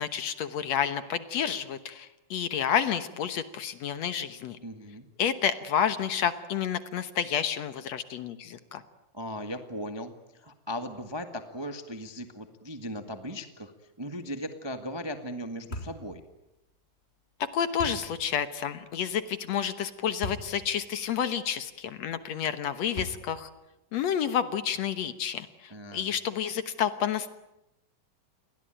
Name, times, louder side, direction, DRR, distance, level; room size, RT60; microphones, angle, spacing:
voice 1, 0.0-4.6 5.2-8.8 17.4-23.5 23.9-27.3, left 8 dB, 60° left, 12 dB, 2.0 m, -30 dB
voice 2, 4.6-5.0 9.1-13.7 14.0-16.2 25.7-26.1, equal, 35° right, 7 dB, 0.4 m, -38 dB
sound 1, 15.7-16.0 17.8-18.1 20.2-20.5 21.1-21.2 22.9-23.4, equal, 15° left, 3.5 m, -37 dB
29.5 x 21.5 x 9.1 m, 0.90 s
omnidirectional pair, 4.0 m